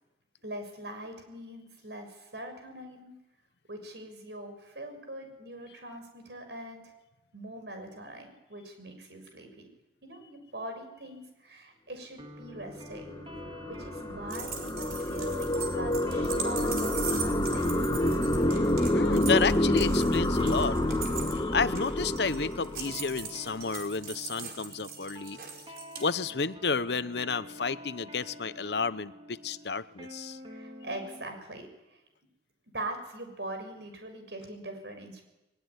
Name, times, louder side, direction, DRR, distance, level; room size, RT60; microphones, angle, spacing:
voice 1, 0.4-3.1 3.7-6.9 7.3-9.7 10.0-13.1 13.7-17.9 30.5-32.0 32.7-35.2, right 1 dB, 80° right, 6 dB, 6.7 m, -42 dB
sound 1, 12.2-31.3, equal, 30° right, 2.6 m, -48 dB
sound 2, 12.7-23.3, left 1 dB, 20° left, 1.4 m, -28 dB
sound 3, 14.3-26.0, right 6 dB, 55° right, 4.7 m, -40 dB
voice 2, 18.9-20.8 21.3-25.4 26.0-30.4, left 4 dB, 75° left, 14 dB, 0.9 m, -31 dB
22.0 x 21.0 x 9.8 m, 0.96 s
head